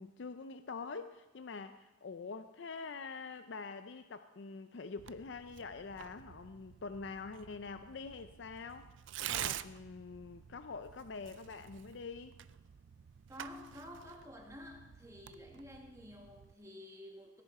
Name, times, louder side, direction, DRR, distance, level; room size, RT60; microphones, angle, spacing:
voice 1, 0.0-8.9 9.3-12.4, left 4 dB, 65° left, 10 dB, 0.5 m, -45 dB
Tearing, 5.0-16.5, right 11 dB, 70° right, 0.4 m, -48 dB
voice 2, 13.3-17.4, left 1 dB, 15° right, 0 dB, 1.9 m, -51 dB
18.0 x 10.5 x 4.2 m, 1.1 s
head